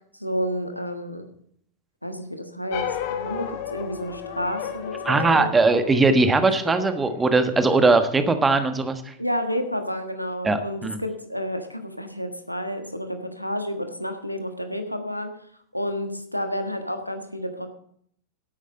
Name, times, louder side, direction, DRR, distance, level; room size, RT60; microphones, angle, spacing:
voice 1, 0.2-1.3 2.0-5.5 6.6-6.7 9.2-15.3 15.7-17.7, equal, 90° left, 6 dB, 1.4 m, -30 dB
sound 1, 2.7-7.3, left 9 dB, 45° left, 1.6 m, -34 dB
voice 2, 5.0-9.1 10.4-11.0, right 3 dB, 15° right, 9 dB, 1.3 m, -20 dB
11.5 x 8.9 x 6.6 m, 0.67 s
figure-of-eight pair, 90°, 0 cm